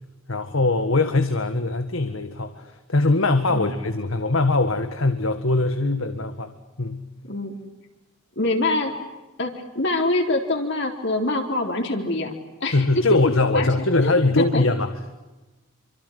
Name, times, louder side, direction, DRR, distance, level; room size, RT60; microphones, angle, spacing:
voice 1, 0.3-6.5 6.8-7.1 12.6-14.9, left 2 dB, 70° left, 8 dB, 1.7 m, -22 dB
voice 2, 8.4-8.9 9.4-12.3 12.6-13.2 13.5-13.7 14.0-14.6, left 2 dB, 55° left, 2 dB, 4.0 m, -25 dB
28.0 x 25.5 x 8.3 m, 1.1 s
head